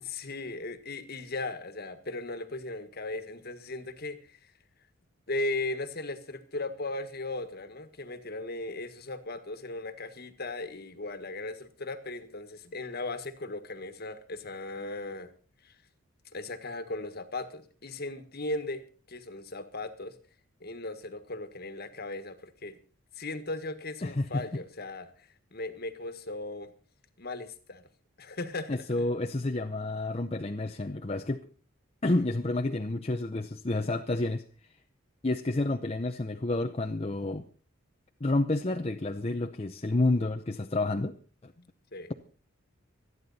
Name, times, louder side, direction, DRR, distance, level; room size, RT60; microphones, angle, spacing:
voice 1, 0.1-4.5 5.3-15.3 15.6-15.7 16.3-20.1 20.6-22.8 23.2-26.7 27.2-27.9 28.2-29.0 41.6-41.7 41.9-42.1, left 2 dB, 50° left, 10 dB, 1.6 m, -37 dB
voice 2, 24.0-24.5 28.7-31.5 32.0-34.4 35.2-37.5 38.2-41.1 41.4-41.5, left 2 dB, 30° left, 5 dB, 0.7 m, -29 dB
26.0 x 9.6 x 4.1 m, 0.38 s
head